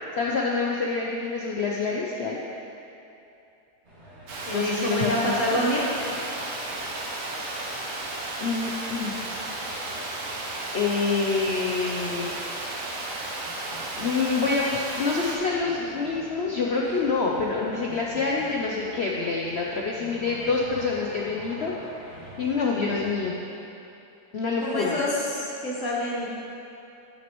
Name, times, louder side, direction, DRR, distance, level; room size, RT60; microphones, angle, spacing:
voice 1, 0.1-2.4 4.5-5.6 8.4-9.2 10.7-12.3 14.0-23.4 24.3-25.0, left 4 dB, 70° left, -2 dB, 0.6 m, -27 dB
sound 1, 3.8-23.1, equal, 35° right, 1.9 m, -46 dB
Water, 4.3-15.4, right 2 dB, 90° right, 1.7 m, -34 dB
voice 2, 4.4-6.1 24.6-26.3, equal, 50° left, -4 dB, 1.5 m, -27 dB
12.0 x 6.1 x 3.0 m, 2.7 s
omnidirectional pair, 1.8 m